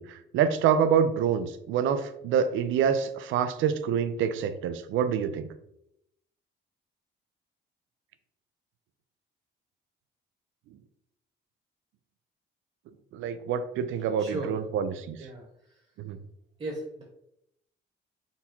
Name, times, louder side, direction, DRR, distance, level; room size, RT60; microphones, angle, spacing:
voice 1, 0.0-5.5 13.1-15.2 16.0-16.2, right 7 dB, 80° right, 11 dB, 0.4 m, -26 dB
voice 2, 14.2-14.5 15.2-15.7 16.6-17.0, right 2 dB, 30° right, -2 dB, 1.1 m, -36 dB
4.0 x 2.3 x 4.3 m, 0.78 s
cardioid pair, 90°, 20 cm